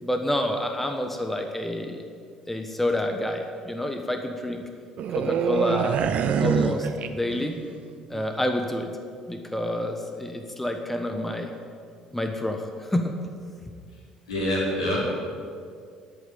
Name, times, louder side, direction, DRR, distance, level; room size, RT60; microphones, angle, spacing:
voice 1, 0.0-2.0 2.5-4.6 5.1-6.1 6.4-7.6 8.1-8.9 9.3-11.5 12.1-13.1, left 1 dB, 10° left, 5 dB, 1.2 m, -28 dB
sound 1, 5.0-7.7 7.9-8.2, right 7 dB, 50° right, 0.7 m, -25 dB
voice 2, 14.3-15.2, left 1 dB, 80° left, -6 dB, 4.2 m, -25 dB
10.5 x 8.8 x 9.0 m, 2.2 s
figure-of-eight pair, 55°, 3 cm